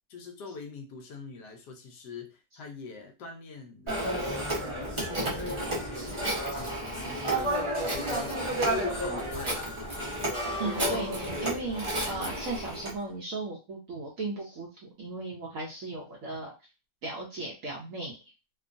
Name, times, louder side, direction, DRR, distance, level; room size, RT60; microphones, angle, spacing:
voice 1, 0.1-8.4 8.7-9.7, left 4 dB, 75° left, 3 dB, 1.1 m, -43 dB
Telephone, 3.9-12.9, right 1 dB, 35° right, 0.5 m, -31 dB
voice 2, 10.6-16.5 17.0-18.2, right 2 dB, 70° right, -2 dB, 0.8 m, -36 dB
3.0 x 2.2 x 2.5 m, 0.28 s
omnidirectional pair, 2.0 m